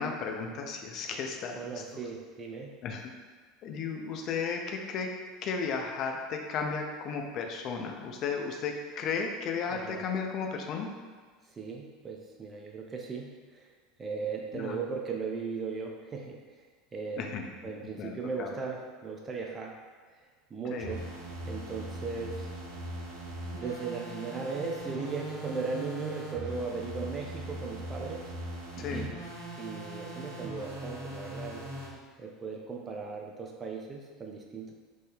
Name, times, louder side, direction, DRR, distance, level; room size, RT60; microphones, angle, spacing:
voice 1, 0.0-2.0 2.8-3.1 3.6-5.1 5.4-10.9 14.5-14.8 17.2-17.5 18.0-18.5 20.7-20.9 28.8-29.1, left 5 dB, 45° left, 2 dB, 0.4 m, -34 dB
voice 2, 1.6-2.7 9.7-10.0 11.6-13.6 14.0-16.4 16.9-17.3 17.6-19.7 20.5-21.0 21.4-22.5 23.6-28.2 28.8-29.1 29.6-31.6 32.2-34.7, right 4 dB, 25° right, 0 dB, 0.4 m, -37 dB
sound 1, 20.8-31.9, right 1 dB, 75° right, 0.6 m, -40 dB
3.1 x 2.1 x 3.5 m, 1.5 s
figure-of-eight pair, 75°, 0 cm